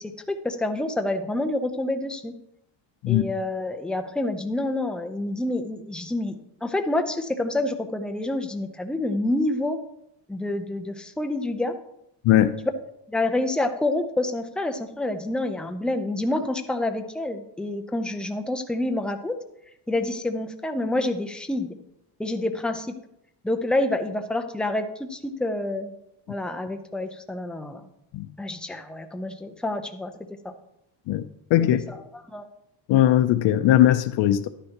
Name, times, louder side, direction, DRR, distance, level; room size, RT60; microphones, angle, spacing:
voice 1, 0.0-2.3 3.1-6.4 6.6-9.8 10.3-11.7 13.1-19.4 19.9-21.7 22.2-22.9 23.4-25.9 26.3-27.8 28.4-30.1 30.4-30.5 31.6-32.5, left 2 dB, ahead, 0.6 m, -28 dB
voice 2, 32.9-34.5, left 12 dB, 90° left, 0.6 m, -19 dB
11.0 x 9.9 x 2.9 m
cardioid pair, 135°, 43 cm